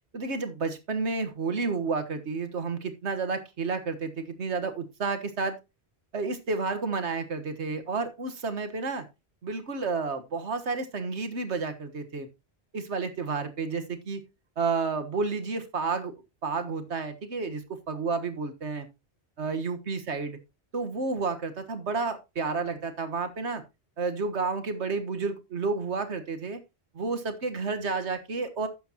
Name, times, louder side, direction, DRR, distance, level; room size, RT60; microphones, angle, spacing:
voice 1, 0.1-5.5 6.1-9.0 9.4-12.3 12.7-14.2 14.6-16.1 16.4-18.9 19.4-20.4 20.7-23.6 24.0-26.6 26.9-28.7, right 4 dB, 85° right, 8 dB, 1.7 m, -31 dB
12.0 x 8.4 x 2.9 m, 0.25 s
omnidirectional pair, 1.1 m